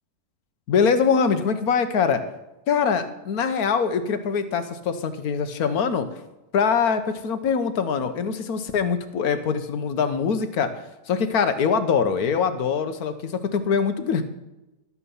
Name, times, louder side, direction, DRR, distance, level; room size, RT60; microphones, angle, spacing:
voice 1, 0.7-2.2 2.7-6.1 6.5-10.7 11.1-14.2, left 6 dB, 75° left, 9 dB, 1.5 m, -23 dB
12.5 x 8.5 x 5.5 m, 0.99 s
omnidirectional pair, 1.6 m